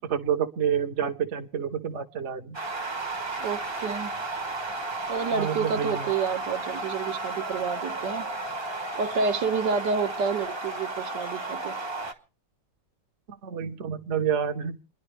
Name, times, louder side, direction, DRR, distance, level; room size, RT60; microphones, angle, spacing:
voice 1, 0.0-2.6 5.3-6.1 13.4-14.8, right 8 dB, 50° right, 1.1 m, -28 dB
sound 1, 2.5-12.1, right 2 dB, 20° right, 0.8 m, -33 dB
voice 2, 3.4-4.1 5.1-8.3 9.0-11.7, right 5 dB, 75° right, 1.6 m, -29 dB
29.0 x 11.0 x 3.3 m
omnidirectional pair, 1.9 m